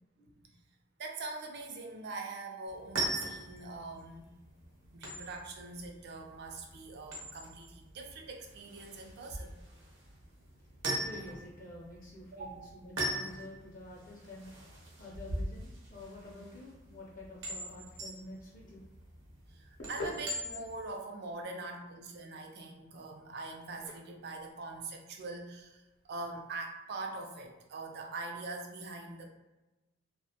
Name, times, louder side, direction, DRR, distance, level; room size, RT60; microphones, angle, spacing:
voice 1, 1.0-4.3 4.9-9.6 12.3-12.7 19.5-29.3, right 3 dB, 60° right, 3 dB, 0.4 m, -43 dB
Screws Drop on Floor, 2.7-20.9, right 1 dB, 80° right, 0.8 m, -41 dB
voice 2, 10.9-14.5 15.0-18.8, left 1 dB, 45° left, -4 dB, 0.5 m, -49 dB
sound 1, 19.4-26.4, left 1 dB, 85° left, 0.6 m, -49 dB
2.4 x 2.1 x 2.7 m, 1.1 s
head